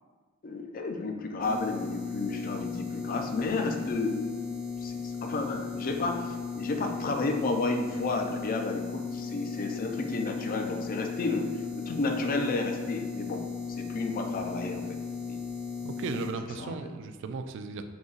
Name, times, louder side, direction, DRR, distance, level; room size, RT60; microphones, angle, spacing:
voice 1, 0.4-4.2 4.8-11.6 11.8-15.0 15.3-15.4 16.6-16.7, left 3 dB, 45° left, 4 dB, 0.4 m, -31 dB
sound 1, 1.4-16.3, left 5 dB, 5° right, 0.6 m, -36 dB
voice 2, 15.8-17.8, right 4 dB, 60° right, 8 dB, 0.3 m, -36 dB
3.9 x 2.8 x 3.9 m, 1.4 s
head